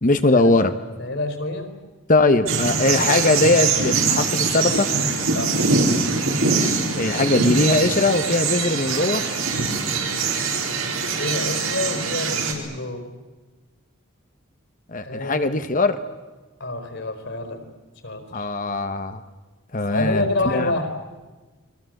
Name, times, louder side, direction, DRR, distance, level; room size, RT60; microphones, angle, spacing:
voice 1, 0.0-0.7 2.1-4.9 7.0-9.2 14.9-16.0 18.3-19.2 19.7-20.7, left 2 dB, 40° left, 10 dB, 1.1 m, -20 dB
voice 2, 1.0-1.7 5.3-5.6 11.1-13.1 15.0-15.6 16.6-17.6 18.0-18.5 19.9-20.9, left 2 dB, 60° left, 7 dB, 4.5 m, -27 dB
sound 1, 2.5-12.5, right 4 dB, 75° right, 4.5 m, -23 dB
30.0 x 22.5 x 7.9 m, 1.2 s
head